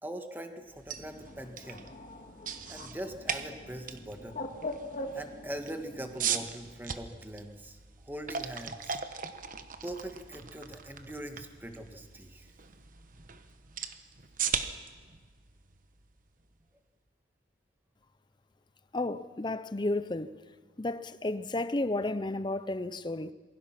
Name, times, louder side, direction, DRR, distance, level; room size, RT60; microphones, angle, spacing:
voice 1, 0.0-1.9 2.7-4.4 5.1-7.8 8.0-9.0 9.8-12.5, right 1 dB, 10° right, 1.7 m, -42 dB
sound 1, 0.7-16.6, right 7 dB, 45° right, 1.1 m, -39 dB
Bird, 1.0-6.5, left 1 dB, 40° left, 1.8 m, -43 dB
voice 2, 18.9-20.4 20.8-23.3, left 2 dB, 25° left, 0.6 m, -32 dB
27.0 x 21.5 x 6.0 m
head